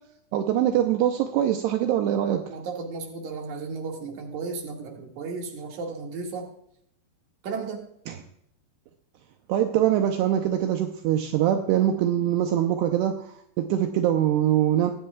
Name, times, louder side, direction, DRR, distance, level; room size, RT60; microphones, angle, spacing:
voice 1, 0.3-2.4 9.5-13.2 13.6-14.9, right 11 dB, 80° right, 4 dB, 2.7 m, -23 dB
voice 2, 2.5-6.5 7.4-7.9, right 4 dB, 50° right, 1 dB, 3.0 m, -34 dB
23.0 x 8.9 x 2.3 m, 0.71 s
omnidirectional pair, 4.9 m